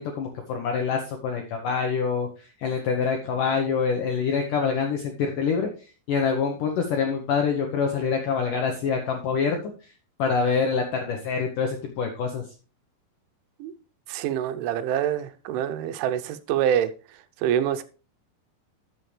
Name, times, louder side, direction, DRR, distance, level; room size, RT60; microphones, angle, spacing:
voice 1, 0.0-2.3 2.6-5.7 6.1-9.6 10.2-12.4, left 5 dB, 75° left, 1.9 m, -25 dB
voice 2, 14.1-16.9 17.4-17.8, right 10 dB, 90° right, 3.2 m, -25 dB
12.5 x 7.3 x 3.3 m
omnidirectional pair, 5.3 m